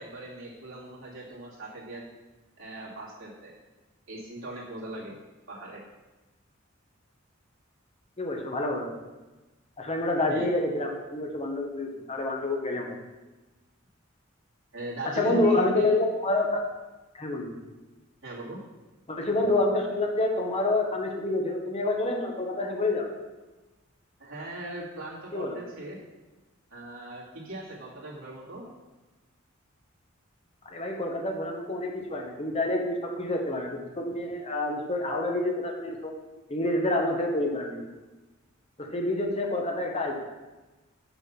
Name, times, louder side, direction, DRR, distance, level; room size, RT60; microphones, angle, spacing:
voice 1, 0.0-2.1 2.6-3.5 4.1-5.1 5.5-5.8 10.3-10.5 14.7-15.9 18.2-18.6 24.2-26.0 26.7-28.6, right 1 dB, 75° right, -5 dB, 2.5 m, -39 dB
voice 2, 8.2-8.9 9.8-13.0 15.2-16.6 17.1-17.5 19.1-23.1 25.3-25.6 30.7-36.1 36.5-37.8 38.9-40.2, left 2 dB, 30° left, 1 dB, 1.1 m, -28 dB
7.1 x 6.0 x 5.9 m, 1.1 s
head